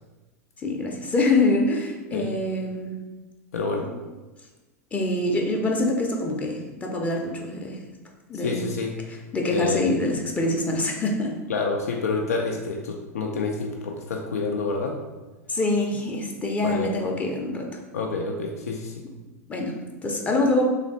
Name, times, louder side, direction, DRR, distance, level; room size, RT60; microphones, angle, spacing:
voice 1, 0.6-3.0 4.9-7.8 8.3-8.6 9.3-11.4 15.5-17.7 19.5-19.8 20.0-20.8, left 2 dB, 15° left, 1 dB, 0.6 m, -25 dB
voice 2, 3.5-3.9 8.4-8.9 9.5-9.9 11.5-15.0 16.6-17.1 17.9-19.0, left 4 dB, 70° left, 1 dB, 0.5 m, -28 dB
3.3 x 3.2 x 3.9 m, 1.2 s
figure-of-eight pair, 90°, 8 cm